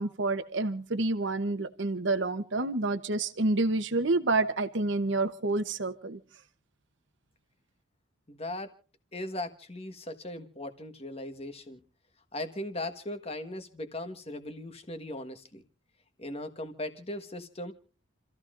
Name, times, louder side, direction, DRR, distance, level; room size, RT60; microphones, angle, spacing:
voice 1, 0.0-6.2, right 2 dB, 60° right, 9 dB, 0.9 m, -28 dB
voice 2, 8.3-8.7 9.1-11.8 12.3-15.6 16.2-17.7, left 1 dB, 30° left, 8 dB, 1.4 m, -38 dB
29.0 x 14.0 x 2.5 m, 0.38 s
head